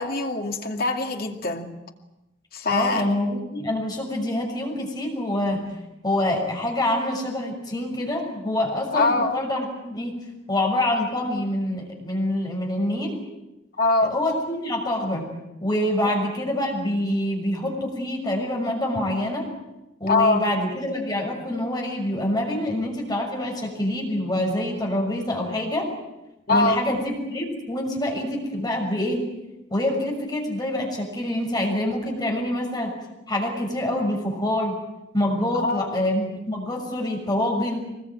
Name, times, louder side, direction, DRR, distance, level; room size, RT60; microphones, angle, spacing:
voice 1, 0.0-1.7 2.5-3.0 8.9-9.3 13.8-14.1 16.0-16.1 20.1-20.4 26.5-26.8 35.5-35.9, left 3 dB, 55° left, 4 dB, 2.4 m, -23 dB
voice 2, 2.7-5.6 6.0-10.2 10.5-13.2 14.0-15.3 15.6-19.4 20.0-25.9 26.5-29.2 29.7-32.9 33.3-34.8 35.1-37.8, left 1 dB, 25° left, 1 dB, 6.3 m, -26 dB
24.0 x 20.5 x 9.0 m, 0.95 s
head